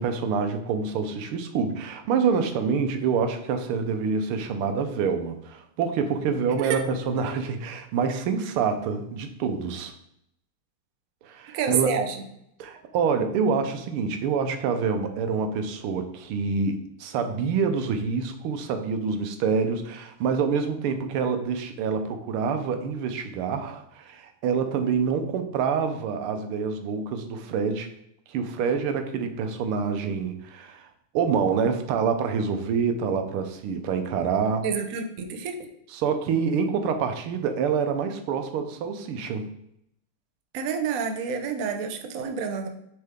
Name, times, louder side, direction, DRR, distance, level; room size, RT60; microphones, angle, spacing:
voice 1, 0.0-9.9 11.2-12.0 12.6-27.9 28.3-30.9 31.1-34.7 35.9-39.5, right 6 dB, 85° right, 7 dB, 1.7 m, -26 dB
voice 2, 11.5-12.2 34.6-35.7 40.5-42.7, right 6 dB, 65° right, 5 dB, 0.8 m, -28 dB
6.6 x 4.5 x 3.5 m, 0.76 s
omnidirectional pair, 2.3 m